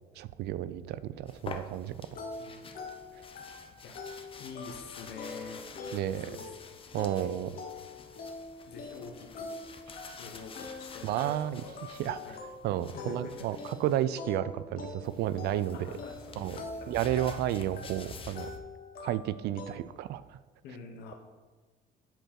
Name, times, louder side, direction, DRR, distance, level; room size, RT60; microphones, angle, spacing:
voice 1, 0.2-2.2 5.9-6.3 6.9-7.5 11.0-11.6 12.0-12.4 12.6-15.9 16.4-18.5 19.0-20.4, right 12 dB, 75° right, 16 dB, 0.4 m, -32 dB
sound 1, 1.3-14.0 15.0-18.6, left 5 dB, 30° left, 0.6 m, -48 dB
sound 2, 2.1-19.7, left 3 dB, 60° left, 1.1 m, -44 dB
voice 2, 4.4-5.7 6.2-6.6 7.2-7.5 8.7-9.8 10.2-11.1 11.5-11.7 12.2-12.4 12.9-13.6 15.4-16.9 20.6-21.1, left 5 dB, 80° left, 2 dB, 1.0 m, -47 dB
7.9 x 4.5 x 4.4 m, 1.4 s
cardioid pair, 110°, 17 cm